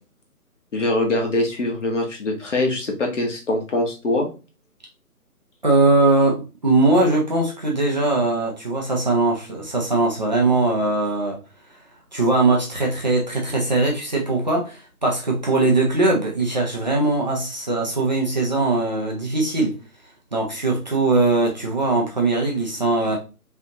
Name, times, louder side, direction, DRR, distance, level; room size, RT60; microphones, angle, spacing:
voice 1, 0.7-4.3, left 2 dB, 50° left, 1.6 m, -23 dB
voice 2, 5.6-11.4 12.1-19.8 20.3-23.2, right 2 dB, 30° right, 0.8 m, -20 dB
4.9 x 3.4 x 2.8 m
figure-of-eight pair, 165°, 46 cm